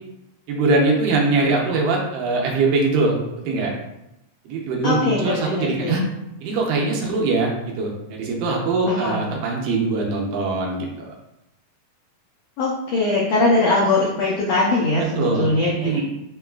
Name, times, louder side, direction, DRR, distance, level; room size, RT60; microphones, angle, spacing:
voice 1, 0.5-3.7 4.5-6.0 6.4-11.1 15.2-15.5 15.8-16.0, right 3 dB, 90° right, -1 dB, 2.3 m, -22 dB
voice 2, 4.8-6.0 8.9-9.2 12.6-16.0, left 2 dB, 85° left, -6 dB, 1.5 m, -21 dB
6.1 x 2.3 x 2.3 m, 0.88 s
omnidirectional pair, 3.8 m